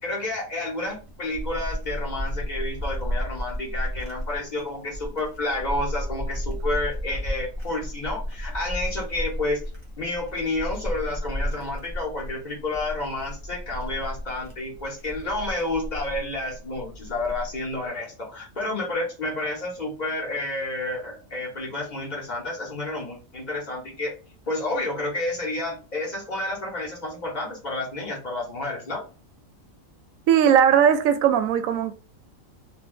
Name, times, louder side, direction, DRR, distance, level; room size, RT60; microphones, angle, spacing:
voice 1, 0.0-9.6 10.0-24.1 24.5-29.0, left 2 dB, 35° left, 1.1 m, -30 dB
sound 1, 0.9-17.7, equal, 25° right, 0.8 m, -33 dB
voice 2, 30.3-31.9, right 8 dB, 80° right, 1.0 m, -18 dB
2.7 x 2.3 x 3.8 m
omnidirectional pair, 1.4 m